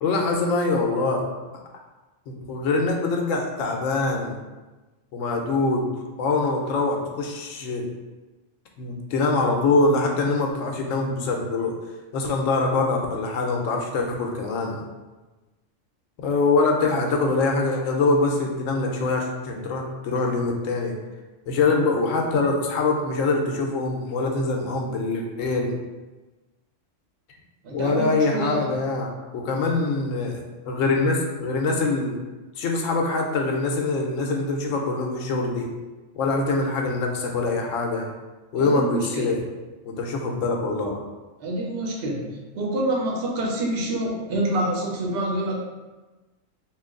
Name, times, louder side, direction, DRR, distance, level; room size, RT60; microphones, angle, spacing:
voice 1, 0.0-1.3 2.3-4.3 5.1-5.9 6.2-7.9 8.8-11.8 12.1-14.8 16.2-21.0 21.5-25.8 27.7-30.4 30.7-32.2 32.6-35.7 36.2-38.1 38.5-39.4 39.9-41.0, left 3 dB, 85° left, 1 dB, 1.0 m, -24 dB
voice 2, 27.6-28.6 38.5-39.3 41.4-45.6, right 1 dB, 55° right, -2 dB, 0.9 m, -27 dB
3.0 x 2.5 x 3.6 m, 1.2 s
omnidirectional pair, 1.3 m